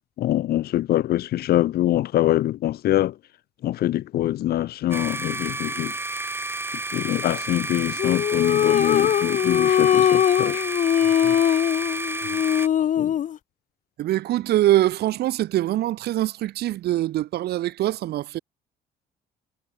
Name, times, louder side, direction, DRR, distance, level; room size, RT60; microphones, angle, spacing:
voice 1, 0.2-3.2 3.6-5.9 6.9-10.7 13.0-13.1, left 13 dB, 65° left, 1.9 m, -24 dB
sound 1, 4.9-12.7, right 2 dB, 15° right, 4.2 m, -31 dB
sound 2, 8.0-13.4, left 10 dB, 50° left, 1.4 m, -21 dB
voice 2, 11.0-11.4 12.3-12.4 14.0-18.4, right 14 dB, 70° right, 4.3 m, -24 dB
cardioid pair, 110°, 17 cm